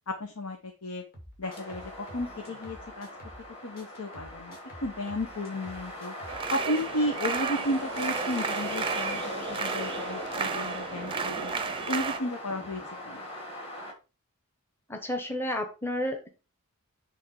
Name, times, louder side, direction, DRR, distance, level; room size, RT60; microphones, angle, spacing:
voice 1, 0.2-1.0 1.4-3.1 3.6-6.1 6.5-9.2 9.5-11.5 11.9-13.2, left 1 dB, 80° left, 3 dB, 1.1 m, -33 dB
sound 1, 1.1-3.5 3.8-6.5 6.8-7.0, equal, 40° left, 2.8 m, -49 dB
sound 2, 1.4-13.9, equal, 25° left, 2.0 m, -39 dB
sound 3, 6.3-12.2, right 5 dB, 25° right, 0.6 m, -33 dB
voice 2, 14.9-16.3, left 1 dB, 10° left, 4 dB, 0.9 m, -31 dB
8.5 x 3.6 x 4.8 m, 0.31 s
head